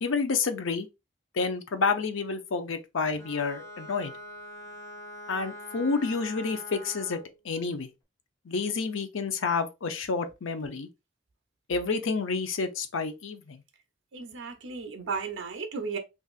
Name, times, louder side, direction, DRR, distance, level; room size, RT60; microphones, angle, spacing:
voice 1, 0.0-0.9 1.3-4.1 5.3-7.9 8.5-10.9 11.7-13.6, left 4 dB, 80° left, 0.6 m, -29 dB
Bowed string instrument, 3.1-7.4, left 1 dB, 15° left, 0.7 m, -44 dB
voice 2, 14.1-16.0, right 5 dB, 75° right, 0.6 m, -34 dB
4.0 x 2.4 x 2.4 m
head